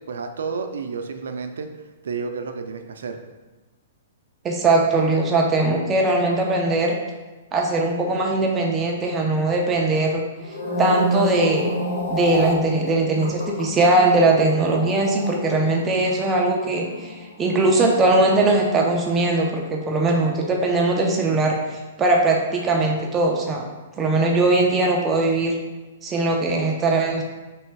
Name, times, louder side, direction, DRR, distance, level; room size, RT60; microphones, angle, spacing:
voice 1, 0.0-1.7 2.0-3.2, right 5 dB, 85° right, 6 dB, 0.5 m, -30 dB
voice 2, 4.4-7.0 7.5-10.2 10.8-11.7 12.1-23.6 24.0-25.5 26.0-27.2, right 2 dB, 15° right, -1 dB, 0.5 m, -20 dB
sound 1, 10.4-18.8 19.1-19.4, left 1 dB, 80° left, 1.1 m, -29 dB
3.3 x 3.1 x 4.5 m, 1.2 s
hypercardioid pair, 160°, 0 cm